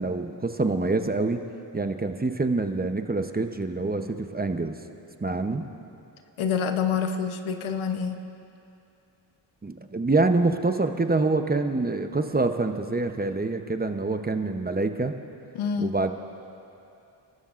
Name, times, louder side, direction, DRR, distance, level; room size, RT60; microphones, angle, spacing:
voice 1, 0.0-1.4 1.7-4.8 5.2-5.7 9.6-15.1 15.8-16.1, right 3 dB, 20° right, 7 dB, 0.8 m, -26 dB
voice 2, 6.4-8.2 15.5-15.9, left 6 dB, 80° left, 8 dB, 1.0 m, -27 dB
29.5 x 13.0 x 2.6 m, 2.8 s
cardioid pair, 65°, 48 cm